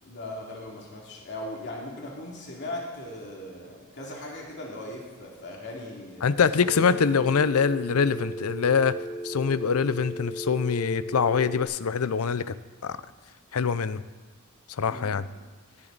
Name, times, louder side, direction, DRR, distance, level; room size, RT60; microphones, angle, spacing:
voice 1, 0.0-6.8 14.9-15.1, left 1 dB, 55° left, -2 dB, 2.6 m, -39 dB
voice 2, 6.2-9.0 9.2-12.5 12.8-13.0 13.5-14.0 14.8-15.2, left 6 dB, 90° left, 15 dB, 0.6 m, -24 dB
Telephone, 6.6-11.6, right 1 dB, 15° left, 1.1 m, -36 dB
18.0 x 12.0 x 4.0 m, 1.4 s
head